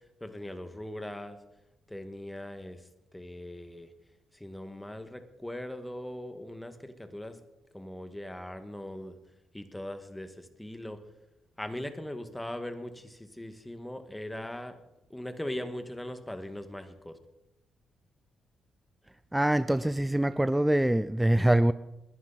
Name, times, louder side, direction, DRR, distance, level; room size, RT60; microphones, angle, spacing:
voice 1, 0.2-1.4 1.9-2.8 3.1-3.9 4.3-7.4 7.7-9.2 9.5-11.0 11.6-14.8 15.1-17.2, left 1 dB, 10° left, 8 dB, 1.9 m, -40 dB
voice 2, 19.3-21.7, right 1 dB, 10° right, 14 dB, 0.5 m, -24 dB
21.0 x 11.0 x 4.2 m, 0.94 s
supercardioid pair, 60°, 0 cm